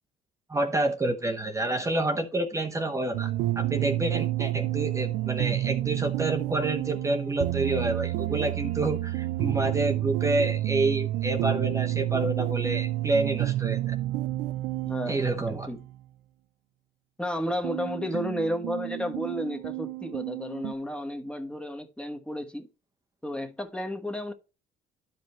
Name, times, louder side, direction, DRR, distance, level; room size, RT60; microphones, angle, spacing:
voice 1, 0.5-14.0 15.1-15.7, right 2 dB, 20° right, 0.9 m, -28 dB
sound 1, 3.1-15.9 17.6-20.7, right 15 dB, 90° right, 0.6 m, -30 dB
voice 2, 14.9-15.8 17.2-22.7 23.2-24.3, equal, 5° left, 1.3 m, -32 dB
12.0 x 5.1 x 3.1 m
cardioid pair, 110°, 17 cm